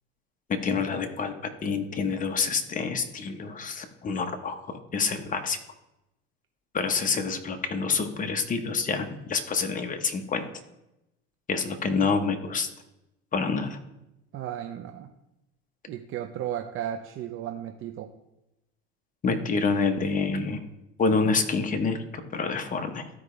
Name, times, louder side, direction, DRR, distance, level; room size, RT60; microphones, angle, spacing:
voice 1, 0.6-1.3 1.6-5.6 6.7-10.4 11.5-12.7 13.3-13.8 19.2-20.6 21.0-23.1, left 4 dB, 25° left, 6 dB, 1.0 m, -27 dB
voice 2, 14.3-15.1 15.9-18.1, right 10 dB, 45° right, 5 dB, 0.6 m, -34 dB
12.5 x 4.9 x 3.3 m, 0.92 s
supercardioid pair, 110°, 31 cm